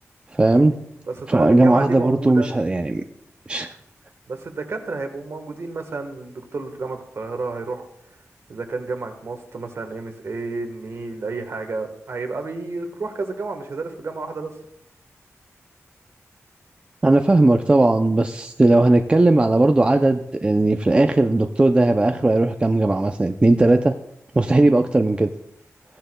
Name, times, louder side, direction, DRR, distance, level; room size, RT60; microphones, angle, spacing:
voice 1, 0.3-0.8 1.3-3.0 3.5-3.7 17.0-23.9 24.3-25.3, right 2 dB, 20° right, 6 dB, 0.4 m, -17 dB
voice 2, 1.1-2.5 4.3-7.9 8.5-14.5, right 3 dB, 55° right, 6 dB, 1.3 m, -30 dB
16.0 x 10.5 x 2.2 m, 0.76 s
wide cardioid pair, 140°, 5 cm